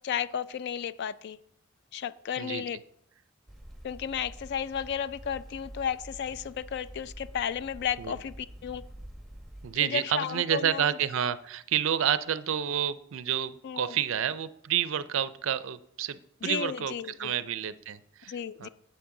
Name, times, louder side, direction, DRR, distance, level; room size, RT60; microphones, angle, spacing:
voice 1, 0.0-1.4 1.9-2.8 3.8-8.8 9.8-11.0 13.6-14.0 16.4-17.4 18.3-18.7, left 8 dB, 50° left, 16 dB, 0.3 m, -33 dB
sound 1, 3.5-9.7, right 1 dB, ahead, 0.9 m, -47 dB
voice 2, 9.6-16.9 17.2-18.7, right 9 dB, 65° right, 15 dB, 0.4 m, -29 dB
8.6 x 7.7 x 3.7 m, 0.72 s
head